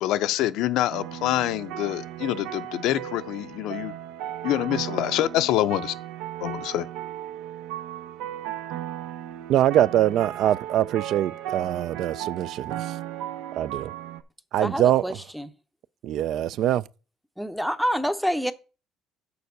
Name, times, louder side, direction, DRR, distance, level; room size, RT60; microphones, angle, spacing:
voice 1, 0.0-4.0 4.4-5.9 6.4-6.9, left 13 dB, 75° left, 0.5 m, -26 dB
sound 1, 0.9-14.2, right 12 dB, 85° right, 0.7 m, -36 dB
voice 2, 9.5-12.8 13.6-13.9 14.5-15.0 16.0-16.8, right 12 dB, 60° right, 0.3 m, -23 dB
voice 3, 14.6-15.5 17.4-18.5, equal, ahead, 0.6 m, -27 dB
6.9 x 4.7 x 6.5 m
cardioid pair, 130°, 0 cm